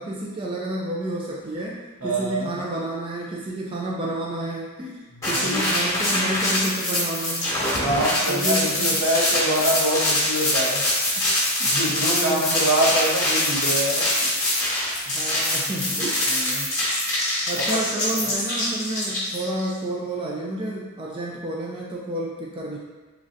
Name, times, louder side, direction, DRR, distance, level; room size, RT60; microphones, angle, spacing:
voice 1, 0.0-7.5 8.3-8.9 11.9-12.6 15.1-16.2 17.5-22.8, right 1 dB, 20° right, -4 dB, 0.3 m, -30 dB
voice 2, 2.0-2.6 5.1-5.7 7.8-10.8 11.6-14.2 16.3-16.7 17.5-17.8, right 1 dB, 80° right, -6 dB, 1.0 m, -25 dB
sound 1, 5.2-19.7, left 1 dB, 15° left, 0.9 m, -24 dB
3.8 x 3.2 x 2.6 m, 1.3 s
head